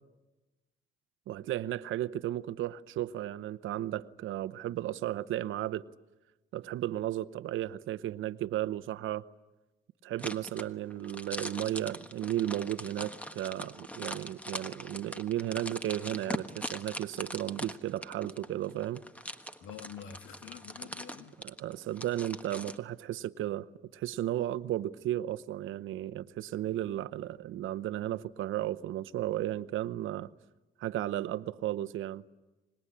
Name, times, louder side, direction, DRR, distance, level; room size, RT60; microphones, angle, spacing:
voice 1, 1.3-5.8 6.5-9.2 10.0-19.0 21.6-23.6 23.9-30.3 30.8-32.2, right 13 dB, 80° right, 0.9 m, -34 dB
sound 1, 10.2-22.8, equal, 5° left, 1.4 m, -41 dB
voice 2, 19.6-21.4, left 8 dB, 90° left, 1.7 m, -47 dB
25.5 x 20.5 x 9.9 m
cardioid pair, 90°, 20 cm